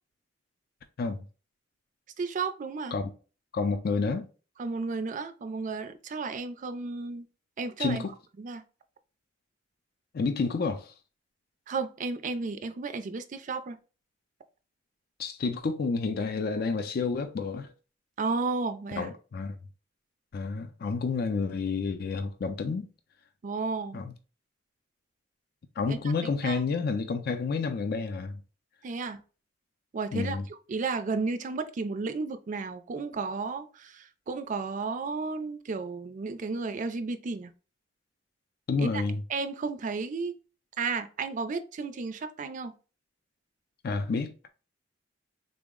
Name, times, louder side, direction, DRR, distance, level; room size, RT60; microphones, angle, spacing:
voice 1, 2.2-3.0 4.6-7.3 7.6-8.1 8.4-8.6 11.7-13.8 18.2-19.1 23.4-24.0 25.9-26.6 28.8-29.2 29.9-30.4 30.7-37.5 38.8-39.0 39.3-40.4 40.8-42.7, right 4 dB, 45° right, 0.4 m, -33 dB
voice 2, 3.5-4.3 7.8-8.1 10.1-10.9 15.2-17.7 18.9-19.6 20.3-22.9 23.9-24.1 25.8-28.4 30.1-30.4 38.7-39.2 43.8-44.5, left 4 dB, 55° left, 0.4 m, -30 dB
3.8 x 2.0 x 3.5 m
head